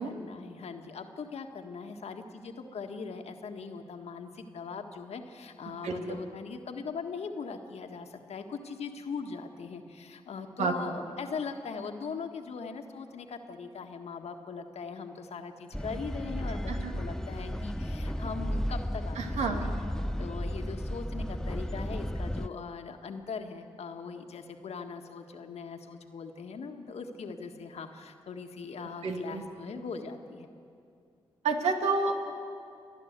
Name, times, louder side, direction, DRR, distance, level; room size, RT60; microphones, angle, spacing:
voice 1, 0.0-19.2 19.5-19.7 20.2-30.5, left 5 dB, 75° left, 5 dB, 1.6 m, -40 dB
voice 2, 5.8-6.2 10.6-11.0 16.7-16.9 19.2-19.7 29.0-29.4 31.4-32.2, right 4 dB, 80° right, 3 dB, 2.0 m, -30 dB
sound 1, 15.7-22.5, equal, 5° left, 0.6 m, -34 dB
30.0 x 11.0 x 8.1 m, 2.5 s
supercardioid pair, 40°, 11 cm